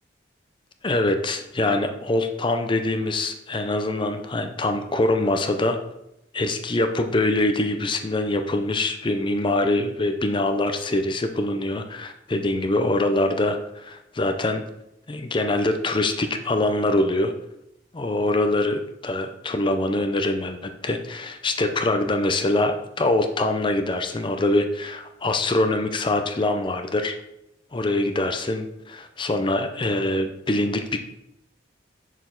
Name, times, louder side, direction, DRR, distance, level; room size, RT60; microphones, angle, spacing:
voice 1, 0.8-5.8 6.3-14.6 15.1-17.3 17.9-27.1 27.7-31.0, left 2 dB, 25° left, 7 dB, 0.5 m, -24 dB
6.8 x 6.3 x 3.8 m, 0.84 s
head